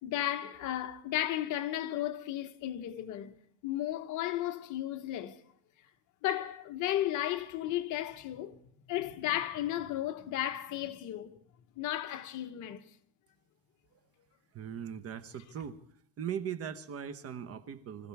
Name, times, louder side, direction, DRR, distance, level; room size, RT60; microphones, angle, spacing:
voice 1, 0.0-3.4 3.6-5.4 6.2-8.6 8.9-11.4 11.8-12.8, left 13 dB, 45° left, 1.3 m, -34 dB
voice 2, 14.5-15.8 16.2-18.1, right 8 dB, 35° right, 1.2 m, -39 dB
25.5 x 15.5 x 3.6 m
supercardioid pair, 130°, 42 cm